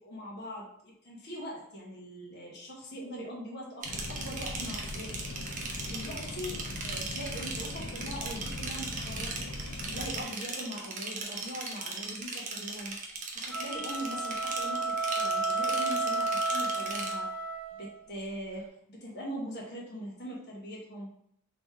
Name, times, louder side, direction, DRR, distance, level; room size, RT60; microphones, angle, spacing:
voice 1, 0.0-5.1 5.9-9.5 9.9-12.9 13.3-17.3 17.7-21.1, equal, 50° left, -3 dB, 1.0 m, -41 dB
sound 1, 3.8-10.2, left 2 dB, 85° left, 0.6 m, -40 dB
sound 2, 3.8-17.1, right 4 dB, 35° right, 0.6 m, -39 dB
sound 3, 13.4-18.0, right 2 dB, 65° right, 0.8 m, -31 dB
3.2 x 2.9 x 3.5 m, 0.72 s
head